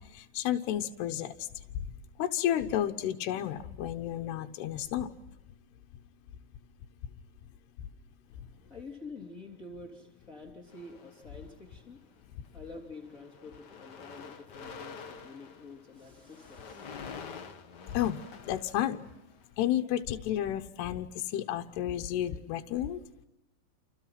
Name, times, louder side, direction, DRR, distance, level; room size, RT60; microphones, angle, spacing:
voice 1, 0.1-1.3 2.2-5.1 17.9-18.2 18.4-19.0 19.6-21.1 21.3-23.0, left 11 dB, 85° left, 5 dB, 3.1 m, -31 dB
voice 2, 8.3-16.9, left 3 dB, 20° left, 2 dB, 3.2 m, -48 dB
sound 1, 10.7-11.7 12.4-12.7 12.9-19.4, left 5 dB, 55° left, 1.1 m, -47 dB
29.5 x 28.5 x 5.9 m, 0.95 s
omnidirectional pair, 4.6 m